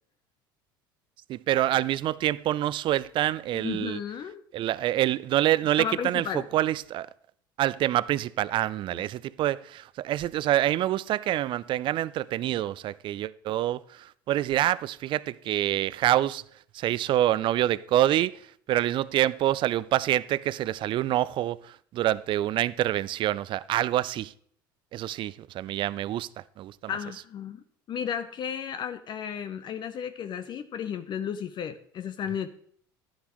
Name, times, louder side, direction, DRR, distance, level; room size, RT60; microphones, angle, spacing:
voice 1, 1.3-4.0 4.5-7.1 7.6-16.4 16.7-18.4 18.7-24.3 24.9-26.3 26.6-26.7, right 13 dB, 45° right, 0.4 m, -26 dB
voice 2, 3.5-4.4 5.8-6.5 8.9-9.0 26.9-32.5, left 8 dB, 40° left, 0.6 m, -34 dB
11.0 x 10.5 x 3.1 m
hypercardioid pair, 75°, 11 cm